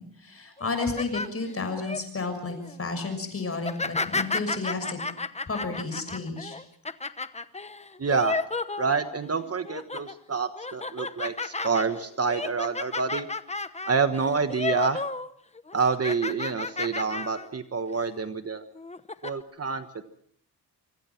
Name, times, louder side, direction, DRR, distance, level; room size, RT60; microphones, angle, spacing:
voice 1, 0.0-5.0 5.5-6.6, left 3 dB, 35° left, 7 dB, 6.5 m, -32 dB
sound 1, 0.6-2.0 2.5-2.8 3.6-9.3 9.6-10.1 10.6-15.3 15.5-17.5 17.9-18.0 18.8-19.3, left 3 dB, 15° left, 1.0 m, -32 dB
voice 2, 8.0-8.4 8.8-13.3 13.9-15.0 15.7-18.6 19.2-20.0, right 5 dB, 35° right, 9 dB, 1.3 m, -27 dB
25.5 x 25.0 x 5.9 m, 0.64 s
wide cardioid pair, 130°, 40 cm